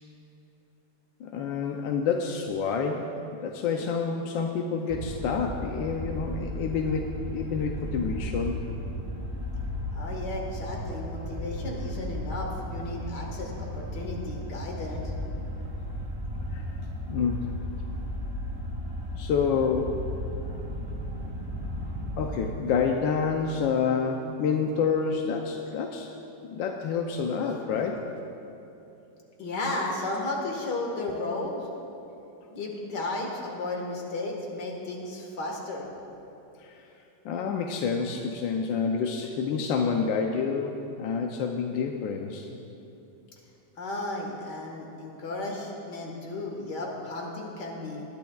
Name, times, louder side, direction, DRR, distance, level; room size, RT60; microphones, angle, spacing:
voice 1, 1.2-3.2 3.4-8.6 16.5-16.6 17.1-17.4 19.2-20.0 22.2-26.1 26.5-28.0 36.6-36.9 37.2-42.5, left 5 dB, 90° left, 3 dB, 1.4 m, -28 dB
sound 1, 4.9-22.5, left 1 dB, 20° right, 0.9 m, -35 dB
voice 2, 9.9-15.1 27.4-27.5 29.4-31.8 32.5-35.9 43.8-48.0, left 2 dB, 65° left, 0 dB, 2.2 m, -34 dB
20.0 x 10.5 x 2.3 m, 2.9 s
omnidirectional pair, 2.0 m